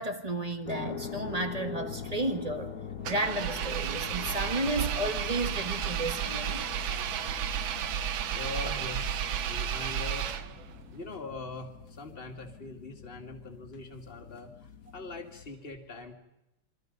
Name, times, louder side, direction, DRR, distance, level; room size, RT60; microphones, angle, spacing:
voice 1, 0.0-2.7 3.1-6.7, right 2 dB, 20° right, 1.3 m, -32 dB
sound 1, 0.6-15.5, left 6 dB, 50° left, 1.6 m, -43 dB
Engine, 3.0-10.8, right 9 dB, 75° right, 1.7 m, -32 dB
voice 2, 8.3-10.3 10.9-16.1, left 3 dB, 30° left, 2.3 m, -42 dB
27.5 x 24.5 x 5.3 m
omnidirectional pair, 2.2 m